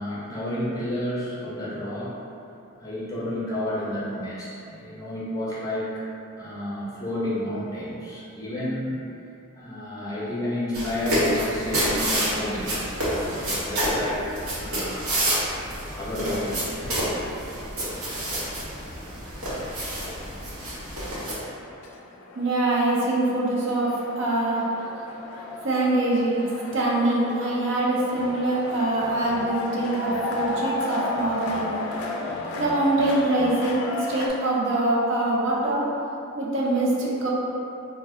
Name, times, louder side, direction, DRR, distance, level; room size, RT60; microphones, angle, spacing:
voice 1, 0.0-2.2 2.8-6.0 6.4-9.0 9.5-15.1 15.9-17.1, left 1 dB, 15° left, -9 dB, 0.5 m, -31 dB
sound 1, 10.7-21.3, equal, 90° right, 0.8 m, -28 dB
sound 2, 20.5-34.3, left 2 dB, 85° left, 0.4 m, -34 dB
voice 2, 22.4-24.6 25.6-26.5 26.7-31.7 32.6-35.9 36.3-37.3, right 2 dB, 60° right, -5 dB, 0.5 m, -24 dB
2.5 x 2.1 x 3.6 m, 2.7 s
head